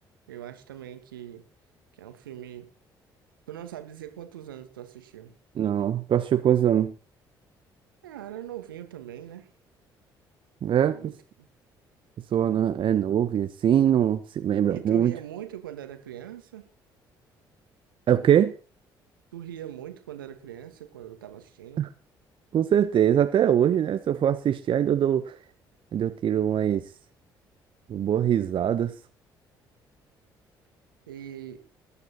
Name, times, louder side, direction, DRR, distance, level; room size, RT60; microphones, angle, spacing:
voice 1, 0.3-1.5 1.9-2.7 3.5-5.4 8.0-9.5 10.7-11.5 14.7-16.7 19.3-21.9 31.1-31.6, right 11 dB, 75° right, 8 dB, 2.1 m, -41 dB
voice 2, 5.6-6.9 10.6-11.1 12.3-15.1 18.1-18.5 21.8-21.9 22.5-25.3 25.9-26.8 27.9-28.9, right 10 dB, 50° right, 9 dB, 1.2 m, -23 dB
19.0 x 9.8 x 4.2 m, 0.34 s
figure-of-eight pair, 45°, 11 cm